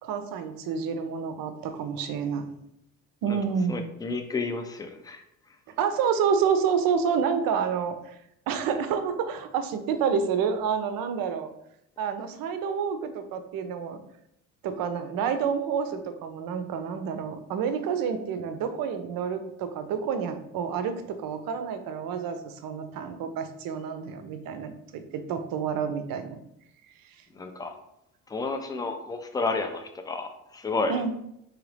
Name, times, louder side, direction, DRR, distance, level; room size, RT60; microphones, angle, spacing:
voice 1, 0.0-2.5 3.2-3.9 5.8-8.2 8.5-11.5 12.0-14.0 14.6-26.4 27.1-27.2 30.9-31.1, right 6 dB, 50° right, 9 dB, 0.6 m, -29 dB
voice 2, 3.7-5.2 27.3-27.7 28.3-31.0, left 3 dB, 10° left, 6 dB, 0.3 m, -31 dB
3.7 x 3.0 x 3.1 m, 0.80 s
hypercardioid pair, 55°, 46 cm